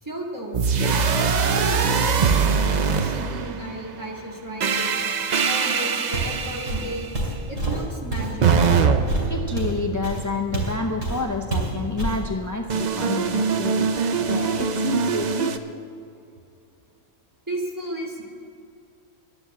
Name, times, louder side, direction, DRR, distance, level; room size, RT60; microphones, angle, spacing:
voice 1, 0.0-4.9 5.5-7.1 7.5-8.8 17.5-18.2, right 1 dB, 15° right, -3 dB, 2.0 m, -34 dB
sound 1, 0.5-3.8 4.6-7.1 8.4-10.5 12.7-15.6, right 5 dB, 50° right, 0.5 m, -22 dB
Walk footsteps, 6.1-6.4 6.7-10.8 11.0-11.2 11.5-12.2, right 2 dB, 85° right, 3.0 m, -27 dB
voice 2, 9.3-13.9 14.2-15.8, left 3 dB, 30° left, 2 dB, 0.3 m, -29 dB
11.5 x 9.9 x 7.2 m, 2.6 s
omnidirectional pair, 1.3 m